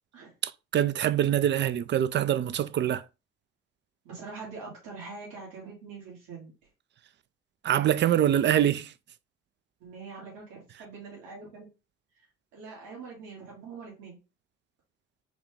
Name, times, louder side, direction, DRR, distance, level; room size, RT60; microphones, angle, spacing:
voice 1, 0.4-3.0 7.6-8.9, right 11 dB, 35° right, 0.4 m, -24 dB
voice 2, 4.0-6.5 9.8-11.7 12.1-12.3 12.5-14.2, right 4 dB, 75° right, 2.0 m, -43 dB
5.0 x 2.3 x 3.2 m
hypercardioid pair, 55°, 34 cm